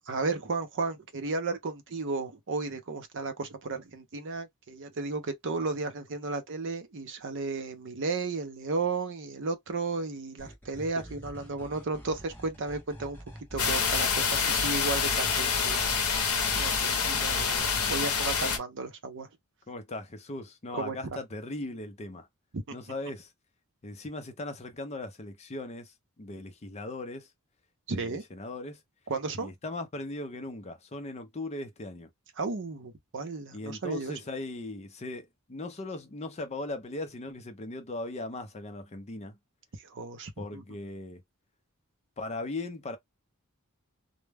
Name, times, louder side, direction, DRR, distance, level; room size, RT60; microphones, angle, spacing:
voice 1, 0.0-13.2 13.5-16.2 16.6-19.3 20.7-21.2 22.5-22.6 27.9-28.2 29.1-29.5 32.4-34.2 39.9-40.6, right 3 dB, 55° right, 0.6 m, -34 dB
sound 1, 10.4-18.0, equal, 10° left, 0.8 m, -46 dB
sound 2, 13.6-18.6, left 6 dB, 75° left, 0.7 m, -27 dB
voice 2, 19.7-22.3 22.7-23.3 23.8-27.3 27.9-28.8 29.4-32.1 33.5-39.4 40.4-41.2 42.2-43.0, left 2 dB, 30° left, 0.5 m, -38 dB
2.1 x 2.1 x 3.3 m
head